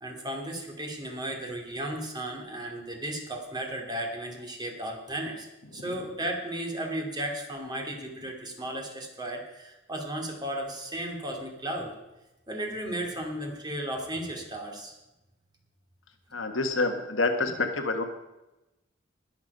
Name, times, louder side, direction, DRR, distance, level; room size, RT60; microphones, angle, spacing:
voice 1, 0.0-5.5 5.7-11.9 12.5-14.9, right 1 dB, 20° right, 1 dB, 2.4 m, -35 dB
voice 2, 5.7-6.1 16.3-18.0, left 3 dB, 75° left, 5 dB, 1.5 m, -28 dB
20.5 x 7.0 x 5.4 m, 0.98 s
head